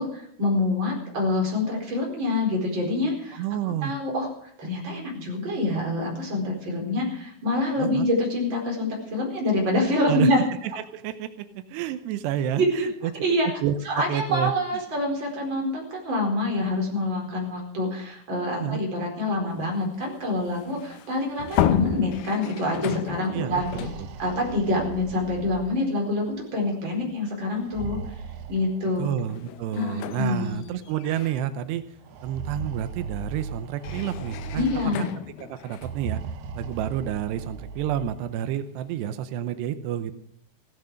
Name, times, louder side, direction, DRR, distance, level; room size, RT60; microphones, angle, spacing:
voice 1, 0.0-3.4 3.8-4.3 4.6-10.4 12.5-12.9 13.2-13.5 13.8-23.6 24.2-28.0 28.5-29.2 29.7-30.7 34.5-35.1, left 2 dB, 30° right, 0 dB, 5.0 m, -26 dB
voice 2, 3.3-3.9 7.8-8.1 10.0-10.3 10.6-13.1 13.4-14.5 18.6-18.8 23.3-24.1 29.0-31.8 32.2-34.7 35.0-35.1 35.4-36.2 36.6-40.1, right 10 dB, 85° right, 10 dB, 2.9 m, -29 dB
sound 1, 19.5-25.8 26.2-26.4 27.5-27.7 28.1-37.9, left 11 dB, 75° left, 2.6 m, -34 dB
sound 2, 23.4-26.2 27.5-29.2 30.2-30.3 30.7-30.8 32.0-35.2 35.7-38.3, right 5 dB, 70° right, 1.8 m, -38 dB
16.0 x 13.0 x 6.4 m, 0.69 s
omnidirectional pair, 4.7 m